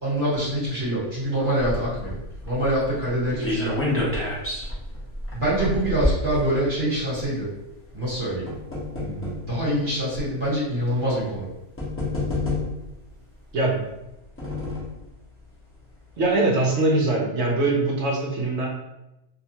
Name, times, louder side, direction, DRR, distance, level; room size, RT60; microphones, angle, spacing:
voice 1, 0.0-2.1 2.4-3.9 5.3-7.5 7.9-8.5 9.0-11.5, right 1 dB, 35° right, -8 dB, 1.3 m, -25 dB
sound 1, 1.6-7.0 7.9-9.5 10.3-10.4 11.4-11.5 11.8-13.0 13.9-15.0 15.4-15.5 15.8-15.9, left 2 dB, 20° left, 0.3 m, -29 dB
voice 2, 13.5-13.8 16.2-18.7, right 2 dB, 60° right, -2 dB, 0.8 m, -22 dB
2.8 x 2.2 x 2.8 m, 0.92 s
omnidirectional pair, 1.6 m